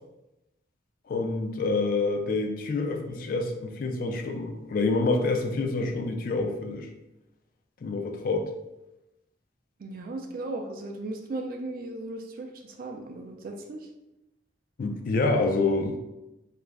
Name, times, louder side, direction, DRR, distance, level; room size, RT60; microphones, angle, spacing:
voice 1, 1.1-6.9 7.8-8.5 14.8-16.0, left 3 dB, 50° left, 4 dB, 0.3 m, -27 dB
voice 2, 9.8-13.9, right 2 dB, 50° right, 3 dB, 0.3 m, -36 dB
2.4 x 2.1 x 3.2 m, 0.97 s
head